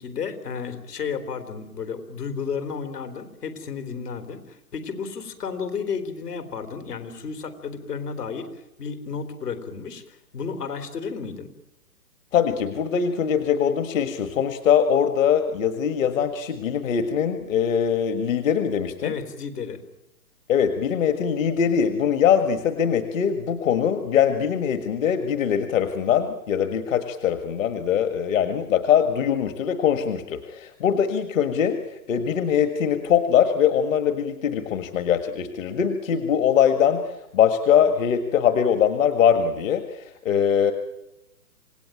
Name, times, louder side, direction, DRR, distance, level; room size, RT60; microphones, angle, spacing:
voice 1, 0.0-11.5 19.0-19.8, left 6 dB, 75° left, 8 dB, 3.8 m, -32 dB
voice 2, 12.3-19.2 20.5-31.8 32.1-40.7, left 8 dB, 55° left, 8 dB, 1.8 m, -22 dB
27.5 x 18.0 x 9.0 m, 0.96 s
hypercardioid pair, 140°, 47 cm